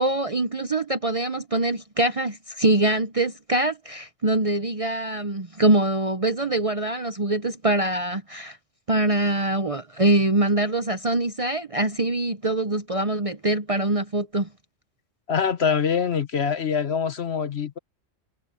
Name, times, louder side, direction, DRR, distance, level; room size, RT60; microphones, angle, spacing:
voice 1, 0.0-8.6 8.9-14.5, right 2 dB, 35° right, 0.7 m, -24 dB
voice 2, 15.3-17.8, left 6 dB, 55° left, 1.3 m, -24 dB
omnidirectional pair, 1.3 m